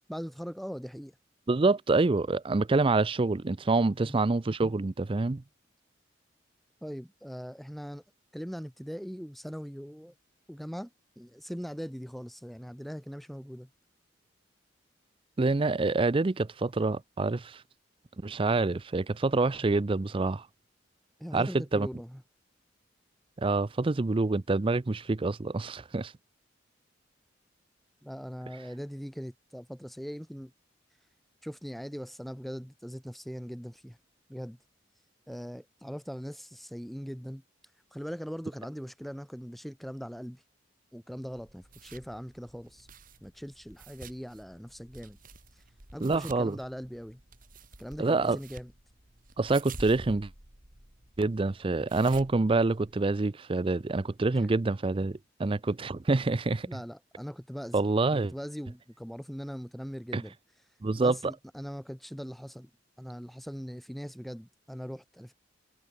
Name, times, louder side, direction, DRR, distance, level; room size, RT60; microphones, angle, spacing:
voice 1, 0.1-1.1 4.0-4.2 6.8-8.0 8.3-10.1 10.5-10.9 11.2-13.7 21.2-22.2 28.0-30.5 31.4-34.0 34.3-34.6 35.3-37.4 37.9-40.4 40.9-42.9 43.2-45.2 45.5-45.6 45.9-47.2 47.8-48.7 54.3-54.5 56.7-60.4 61.0-62.7 63.0-65.3, equal, ahead, 1.1 m, -41 dB
voice 2, 1.5-5.4 15.4-17.6 18.2-20.5 21.3-21.9 23.4-26.1 46.0-46.6 48.0-48.4 49.4-50.3 51.2-56.7 57.7-58.3 60.1-60.2 60.8-61.2, right 3 dB, 30° right, 0.5 m, -26 dB
sound 1, 41.3-53.3, right 3 dB, 45° right, 3.9 m, -50 dB
head